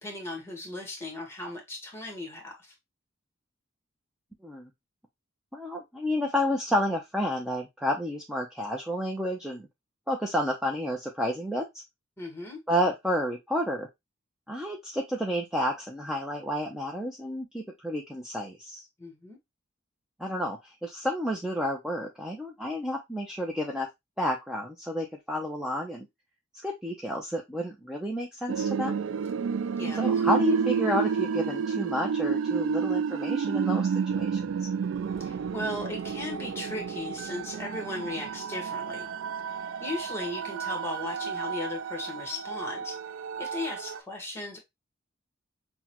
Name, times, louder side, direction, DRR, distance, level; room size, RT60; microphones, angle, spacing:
voice 1, 0.0-2.7 12.2-12.6 19.0-19.4 29.8-30.1 35.2-39.1 39.8-43.0 43.4-44.6, left 2 dB, 15° left, 1.3 m, -37 dB
voice 2, 5.5-9.7 10.1-11.7 12.7-13.9 14.5-18.9 20.2-23.9 24.2-26.1 26.5-28.9 30.0-34.7, equal, 5° right, 0.6 m, -30 dB
sound 1, 28.5-44.0, right 6 dB, 75° right, 0.3 m, -30 dB
6.0 x 2.2 x 2.9 m
head